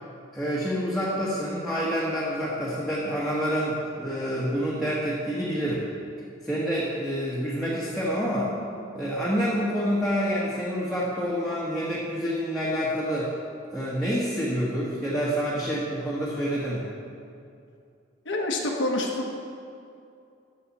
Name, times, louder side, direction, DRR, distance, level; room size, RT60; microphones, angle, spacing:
voice 1, 0.3-5.8 6.4-8.5 8.9-13.3 13.7-16.8, equal, ahead, -8 dB, 1.3 m, -27 dB
voice 2, 18.2-19.3, left 1 dB, 75° left, -1 dB, 1.2 m, -27 dB
13.0 x 7.9 x 4.2 m, 2.5 s
head